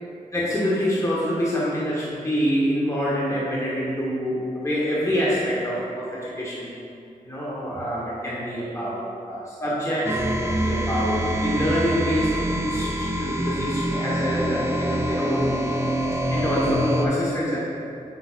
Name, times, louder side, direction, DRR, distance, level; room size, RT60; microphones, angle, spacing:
voice 1, 0.3-6.7 7.2-15.5 16.3-17.6, equal, 20° left, -7 dB, 1.2 m, -26 dB
sound 1, 10.0-17.1, right 1 dB, 15° right, 0.6 m, -25 dB
7.9 x 5.1 x 2.5 m, 2.6 s
cardioid pair, 55°, 16 cm